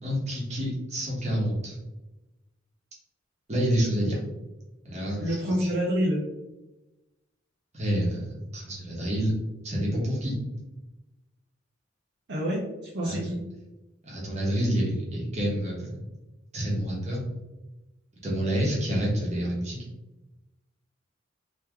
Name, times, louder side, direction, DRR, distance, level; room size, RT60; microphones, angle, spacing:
voice 1, 0.0-1.8 3.5-4.2 4.8-5.7 7.7-9.3 9.6-10.3 13.0-13.3 14.0-16.0 16.5-17.2 18.2-19.8, equal, 35° right, -4 dB, 1.3 m, -28 dB
voice 2, 5.2-6.2 12.3-12.6 12.9-13.4, equal, 60° right, -5 dB, 0.8 m, -27 dB
3.1 x 3.1 x 3.5 m, 1.0 s
head